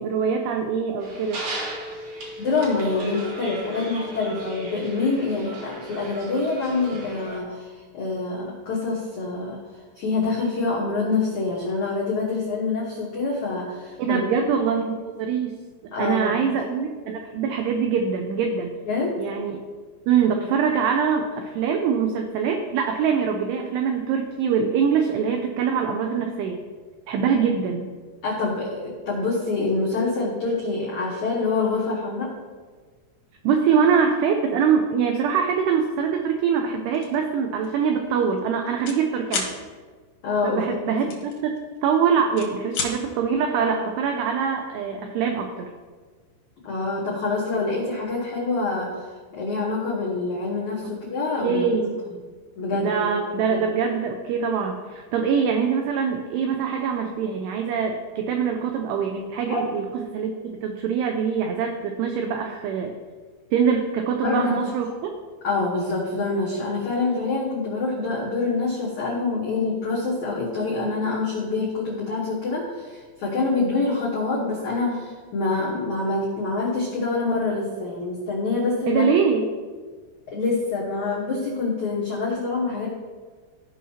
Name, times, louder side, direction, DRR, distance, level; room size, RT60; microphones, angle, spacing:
voice 1, 0.0-1.4 14.0-15.6 15.8-18.7 19.2-19.6 20.1-26.6 27.1-27.9 33.4-39.5 40.4-45.7 50.8-50.9 51.4-52.0 52.7-59.8 60.1-60.3 60.6-62.9 63.5-65.1 78.9-79.5, right 6 dB, 90° right, 4 dB, 2.3 m, -23 dB
sound 1, 1.0-7.4, right 1 dB, 55° right, 2.2 m, -36 dB
voice 2, 2.1-9.6 9.9-14.3 15.9-16.4 18.8-19.2 28.2-32.3 40.2-40.6 46.6-51.6 52.6-53.1 53.5-53.6 59.5-59.6 64.2-64.5 65.4-79.0 80.3-82.9, left 3 dB, 85° left, -5 dB, 1.6 m, -26 dB
sound 2, 36.9-37.2 37.6-37.8 38.1-39.0 39.3-39.5 41.1-41.9 42.2-42.9, left 5 dB, 70° left, 1.8 m, -30 dB
15.5 x 5.6 x 2.8 m, 1.5 s
omnidirectional pair, 5.5 m